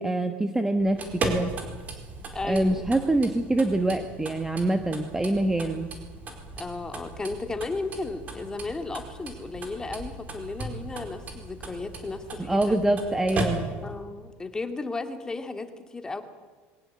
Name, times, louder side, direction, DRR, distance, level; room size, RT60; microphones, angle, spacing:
voice 1, 0.0-1.5 2.4-5.9 12.4-13.6, right 1 dB, 10° right, 7 dB, 1.3 m, -25 dB
sound 1, 0.8-14.0, right 3 dB, 30° right, 4.5 m, -36 dB
voice 2, 2.3-2.9 6.6-12.8 13.8-16.2, left 3 dB, 15° left, 7 dB, 2.2 m, -34 dB
22.5 x 18.0 x 8.7 m, 1.4 s
cardioid pair, 140°, 5 cm